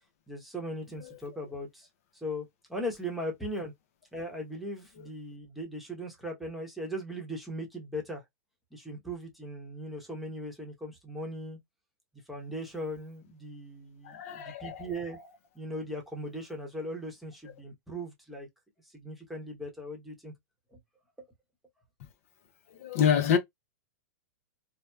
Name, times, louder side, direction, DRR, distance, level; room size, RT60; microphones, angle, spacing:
voice 1, 0.3-3.7 4.1-8.2 8.7-11.6 12.3-18.5 18.8-20.3 20.7-20.8, equal, ahead, 0.9 m, -39 dB
voice 2, 14.0-14.9 22.7-23.4, left 8 dB, 60° left, 0.6 m, -27 dB
2.8 x 2.0 x 2.2 m
hypercardioid pair, 135°, 9 cm